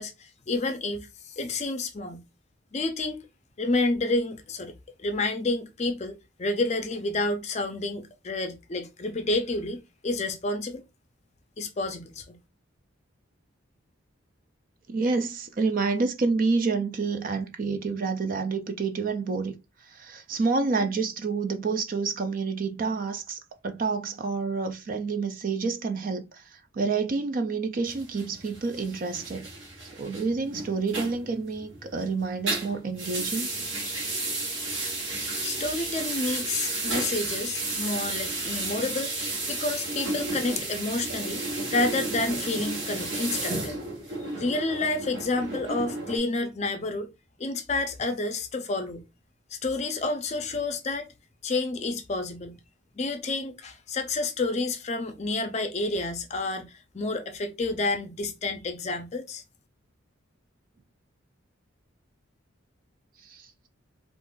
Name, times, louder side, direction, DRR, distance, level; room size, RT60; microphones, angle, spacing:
voice 1, 0.0-2.2 2.7-3.2 3.6-4.7 5.0-10.8 11.6-12.4 35.4-39.1 39.5-41.4 41.7-43.8 44.4-47.1 47.4-49.0 49.5-51.1 51.4-52.6 53.0-59.4, left 2 dB, 35° left, 0.5 m, -29 dB
voice 2, 14.9-19.5 19.8-29.5 29.9-33.5 63.2-63.5, right 4 dB, 40° right, 0.3 m, -28 dB
sound 1, 27.9-32.0 32.3-46.2, right 2 dB, 70° right, 1.2 m, -33 dB
2.5 x 2.4 x 3.6 m
head